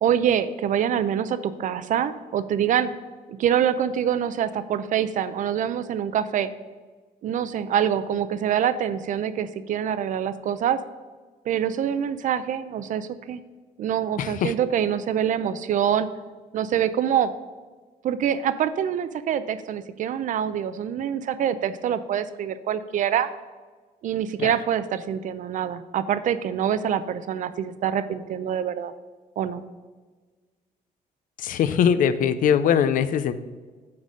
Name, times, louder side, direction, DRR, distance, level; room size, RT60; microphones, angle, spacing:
voice 1, 0.0-2.9 3.3-6.5 7.2-10.8 11.5-13.4 13.8-16.1 16.5-17.3 18.0-23.3 24.0-28.9 29.4-29.6, right 9 dB, 60° right, 12 dB, 0.5 m, -25 dB
voice 2, 14.2-14.5 24.4-24.5 31.4-33.3, left 8 dB, 65° left, 12 dB, 0.5 m, -21 dB
8.6 x 4.1 x 6.2 m, 1.4 s
cardioid pair, 125°, 15 cm